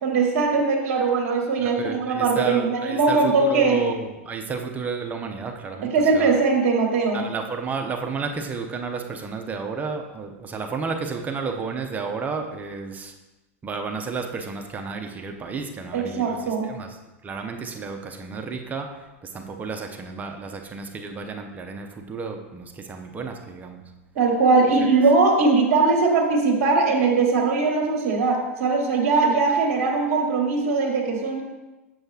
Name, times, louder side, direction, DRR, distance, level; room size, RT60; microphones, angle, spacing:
voice 1, 0.0-3.8 5.8-7.3 15.9-16.7 24.1-31.4, right 4 dB, 55° right, 0 dB, 1.3 m, -20 dB
voice 2, 1.6-3.2 3.5-6.3 7.1-13.1 13.6-16.4 16.7-16.9 17.2-18.9 19.3-23.8, right 5 dB, 20° right, 4 dB, 0.8 m, -31 dB
7.6 x 6.5 x 2.4 m, 1.1 s
hypercardioid pair, 105°, 8 cm